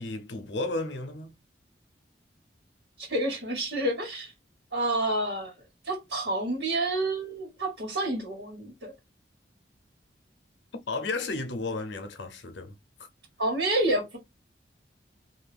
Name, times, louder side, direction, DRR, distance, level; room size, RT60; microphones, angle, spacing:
voice 1, 0.0-1.4 10.9-12.7, left 3 dB, 80° left, 0.7 m, -33 dB
voice 2, 3.0-4.3 4.7-5.5 5.8-8.9 13.4-14.2, right 1 dB, 85° right, 1.7 m, -29 dB
2.7 x 2.6 x 3.4 m
head